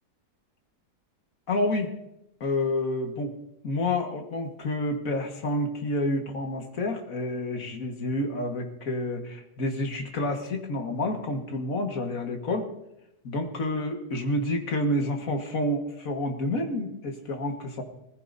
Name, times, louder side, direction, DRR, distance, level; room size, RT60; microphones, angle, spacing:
voice 1, 1.5-1.9 2.4-3.3 3.6-12.7 13.2-17.8, left 1 dB, 60° left, 4 dB, 1.9 m, -29 dB
20.0 x 15.0 x 2.7 m, 0.86 s
omnidirectional pair, 1.7 m